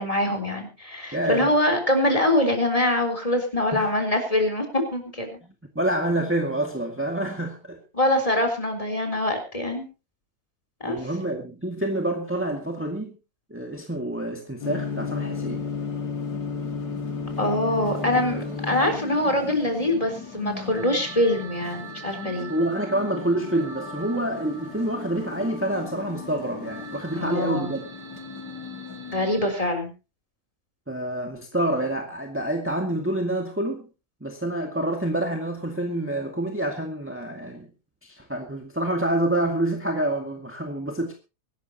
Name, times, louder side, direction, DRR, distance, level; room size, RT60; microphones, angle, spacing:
voice 1, 0.0-5.4 7.9-9.9 10.8-11.0 17.4-22.5 27.1-27.7 29.1-29.9, left 1 dB, 20° left, 4.1 m, -24 dB
voice 2, 1.1-1.5 3.7-3.9 5.4-7.8 10.8-13.2 13.5-15.7 18.1-18.2 22.5-27.8 30.9-33.9 34.2-37.7 38.0-41.1, right 1 dB, 10° right, 2.1 m, -27 dB
sound 1, 14.6-29.5, left 5 dB, 90° left, 2.9 m, -35 dB
sound 2, 17.6-29.6, right 3 dB, 45° left, 6.1 m, -45 dB
24.5 x 12.5 x 2.9 m
omnidirectional pair, 1.7 m